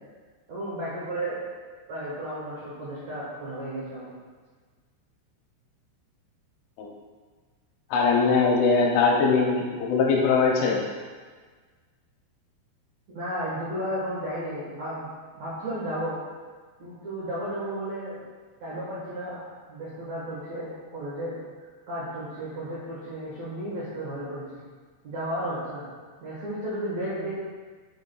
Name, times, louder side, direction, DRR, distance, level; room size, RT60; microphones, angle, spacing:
voice 1, 0.5-1.4 1.9-4.1 13.1-15.1 15.3-16.2 16.8-18.2 18.6-19.4 19.7-21.4 21.9-24.7 25.0-25.9 26.2-27.3, right 1 dB, 85° right, -9 dB, 1.5 m, -33 dB
voice 2, 7.9-10.8, left 4 dB, 80° left, -1 dB, 2.9 m, -21 dB
8.2 x 7.2 x 2.3 m, 1.5 s
omnidirectional pair, 5.8 m